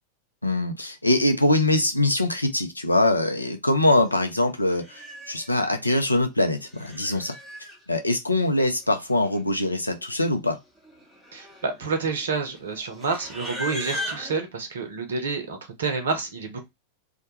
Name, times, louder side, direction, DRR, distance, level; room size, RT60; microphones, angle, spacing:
voice 1, 0.4-7.4 7.9-10.6, left 1 dB, 85° left, 0.4 m, -23 dB
Livestock farm animals working animals, 4.7-5.7 6.5-7.8 8.9-9.0 9.1-9.6 9.9-10.1 10.8-14.4, equal, ahead, 0.8 m, -38 dB
voice 2, 11.3-16.6, right 4 dB, 65° right, 0.6 m, -29 dB
2.2 x 2.1 x 2.8 m
figure-of-eight pair, 90°, 0 cm